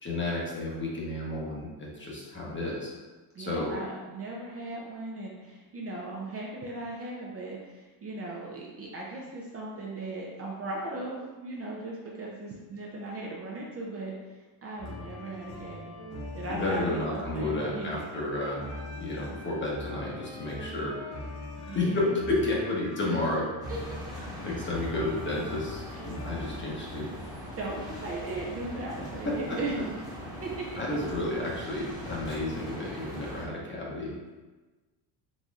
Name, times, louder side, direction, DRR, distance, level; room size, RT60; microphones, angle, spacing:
voice 1, 0.0-2.9 3.4-3.8 16.5-18.6 19.0-21.2 21.7-23.5 24.4-27.1 29.2-29.6 30.8-34.1, left 2 dB, 25° left, -4 dB, 0.9 m, -31 dB
voice 2, 3.3-14.1 14.6-15.9 16.3-18.0 21.7-22.2 23.1-23.2 23.7-23.8 25.9-26.0 27.6-29.8 30.4-30.6, right 2 dB, 30° right, -3 dB, 0.5 m, -37 dB
sound 1, 14.8-26.6, left 2 dB, 75° left, 1.2 m, -42 dB
sound 2, 23.6-33.5, equal, 10° right, 1.1 m, -40 dB
4.0 x 2.9 x 2.3 m, 1.3 s
cardioid pair, 100°, 46 cm